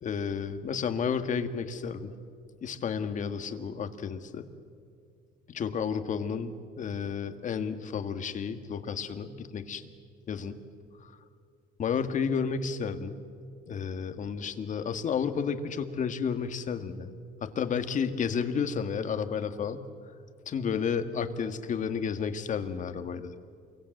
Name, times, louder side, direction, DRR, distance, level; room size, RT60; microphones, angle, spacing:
voice 1, 0.0-2.1 2.6-4.5 5.5-9.9 10.3-10.6 11.0-11.1 11.8-13.2 13.7-17.1 17.4-19.9 20.5-23.3, left 6 dB, 50° left, 9 dB, 1.7 m, -32 dB
28.0 x 23.5 x 7.8 m, 2.2 s
cardioid pair, 110°, 17 cm